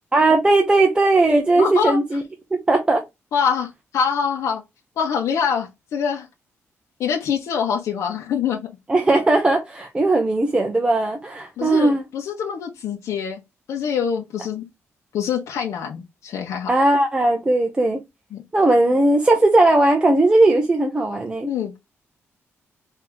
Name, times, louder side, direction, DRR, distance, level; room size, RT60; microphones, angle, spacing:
voice 1, 0.1-2.2 2.5-3.0 8.9-12.0 16.7-18.0 18.5-21.5, right 2 dB, 20° right, 0.7 m, -18 dB
voice 2, 1.6-2.0 3.3-4.6 5.0-6.3 7.0-8.6 11.6-13.4 13.7-14.7 15.1-16.7 18.3-18.4 21.5-21.8, left 7 dB, 80° left, 1.1 m, -24 dB
4.5 x 2.9 x 3.6 m
cardioid pair, 135°, 5 cm